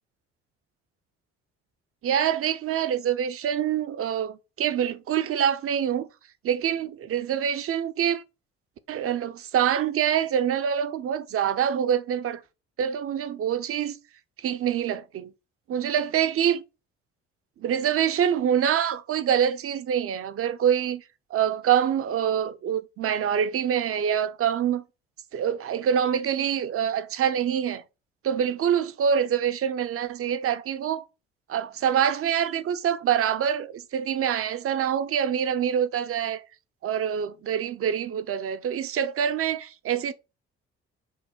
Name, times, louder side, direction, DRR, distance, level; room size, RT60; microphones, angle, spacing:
voice 1, 2.0-6.1 6.4-8.2 8.9-12.4 12.8-14.0 14.4-15.3 15.7-16.6 17.6-21.0 21.3-24.8 25.3-27.8 28.2-31.0 31.5-36.4 36.8-40.1, right 9 dB, 45° right, 0.6 m, -25 dB
5.6 x 2.1 x 4.2 m
hypercardioid pair, 55°, 31 cm